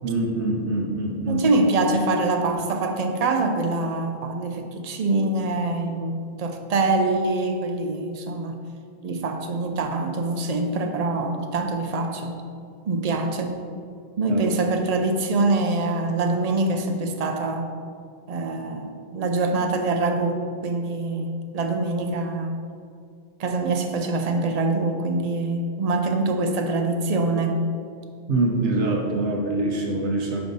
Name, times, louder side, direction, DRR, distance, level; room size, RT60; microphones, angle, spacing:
voice 1, 0.0-1.5 14.3-14.4 28.3-30.4, right 2 dB, 85° right, 0 dB, 1.0 m, -24 dB
voice 2, 1.3-8.6 9.0-12.4 12.9-13.6 14.2-17.7 18.3-22.6 23.4-27.6, right 2 dB, 45° right, 5 dB, 0.5 m, -24 dB
5.1 x 4.6 x 5.3 m, 2.2 s
omnidirectional pair, 1.1 m